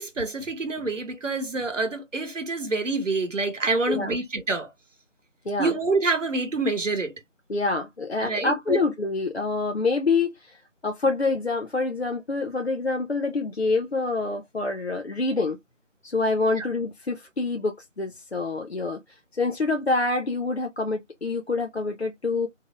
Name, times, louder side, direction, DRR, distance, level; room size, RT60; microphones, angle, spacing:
voice 1, 0.0-4.7 5.6-7.1 8.2-8.8 16.6-16.7, right 3 dB, 75° right, 0.9 m, -27 dB
voice 2, 7.5-10.6 10.8-15.6 16.0-19.0 19.4-22.5, left 3 dB, 60° left, 0.5 m, -26 dB
2.7 x 2.4 x 2.8 m
figure-of-eight pair, 180°, 38 cm